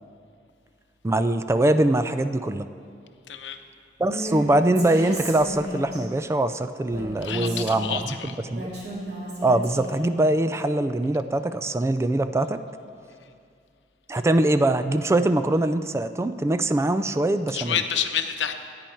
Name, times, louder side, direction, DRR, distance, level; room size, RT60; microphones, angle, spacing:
voice 1, 1.0-2.7 4.0-8.0 8.5-8.7 9.4-12.6 14.1-17.8, right 1 dB, 15° right, 11 dB, 0.3 m, -23 dB
voice 2, 3.3-3.6 7.2-8.4 17.5-18.5, left 8 dB, 85° left, 7 dB, 0.8 m, -28 dB
Female speech woman speaking, 4.0-4.4 4.8-6.0 6.9-8.0 8.5-10.1, right 1 dB, 65° right, 2.9 m, -34 dB
15.0 x 9.2 x 4.5 m, 2.3 s
head